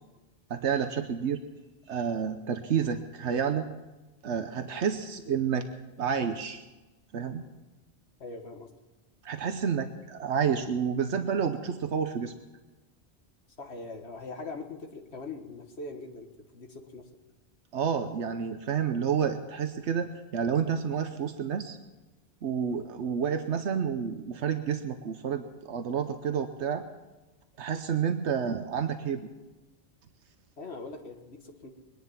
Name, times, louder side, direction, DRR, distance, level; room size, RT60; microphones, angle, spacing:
voice 1, 0.5-1.4 1.9-3.7 4.2-5.7 6.0-6.6 7.1-7.4 9.2-12.3 17.7-21.8 22.4-26.8 27.6-29.3, right 7 dB, 85° right, 7 dB, 1.1 m, -29 dB
voice 2, 8.2-8.7 13.6-16.3 16.5-17.1 30.6-31.7, left 3 dB, 70° left, 4 dB, 1.9 m, -41 dB
22.5 x 10.5 x 5.9 m, 1.1 s
omnidirectional pair, 1.1 m